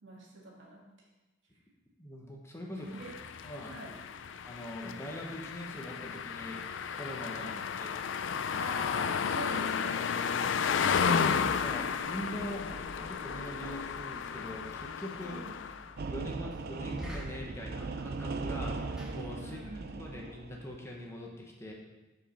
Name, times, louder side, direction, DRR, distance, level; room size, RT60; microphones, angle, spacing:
voice 1, 0.0-0.8 2.7-3.1 3.6-3.9 7.3-7.5 8.5-10.3 15.2-15.5 19.4-20.0, right 1 dB, 75° right, -3 dB, 2.1 m, -45 dB
voice 2, 2.0-2.9 3.4-3.8 4.4-6.6 6.9-7.5 7.7-7.9 11.0-12.7 13.0-15.4 16.1-19.6 20.0-21.7, left 1 dB, 15° left, -1 dB, 1.1 m, -42 dB
sound 1, 2.9-15.9, left 6 dB, 70° left, 0.4 m, -33 dB
Knock, 12.0-19.9, equal, 5° right, 1.9 m, -50 dB
sound 2, 16.0-20.8, right 3 dB, 55° right, 0.5 m, -38 dB
7.6 x 5.2 x 5.7 m, 1.1 s
head